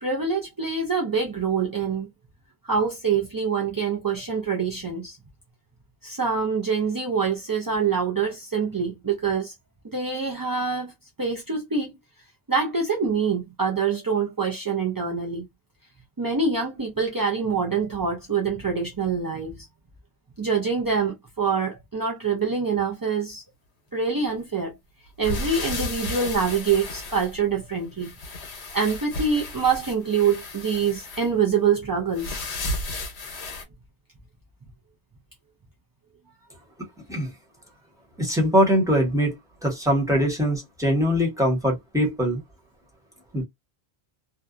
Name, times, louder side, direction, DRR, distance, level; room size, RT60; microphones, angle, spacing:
voice 1, 0.0-2.1 2.6-5.2 6.0-9.5 9.9-10.9 11.2-11.9 12.5-15.4 16.2-19.7 20.4-23.4 23.9-24.7 25.2-28.1 28.7-32.4, right 5 dB, 30° right, 0.4 m, -25 dB
sound 1, 25.2-27.7 28.0-31.3 32.1-33.6, left 2 dB, 85° left, 1.1 m, -33 dB
voice 2, 38.2-39.3 39.6-42.4 43.3-43.4, equal, 5° right, 1.1 m, -22 dB
2.7 x 2.2 x 2.4 m
omnidirectional pair, 1.1 m